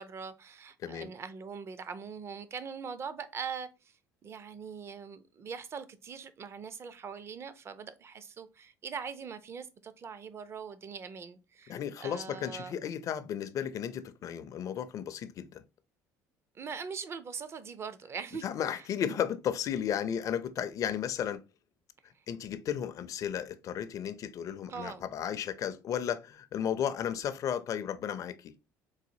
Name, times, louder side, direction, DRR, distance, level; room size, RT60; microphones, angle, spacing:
voice 1, 0.0-3.9 4.2-12.7 16.5-18.5 18.7-18.8 22.1-22.2 24.7-25.0, right 6 dB, 35° right, 0.5 m, -42 dB
voice 2, 11.7-15.6 18.4-21.4 22.3-28.5, left 9 dB, 50° left, 0.4 m, -34 dB
4.0 x 2.4 x 2.7 m
supercardioid pair, 95°, 7 cm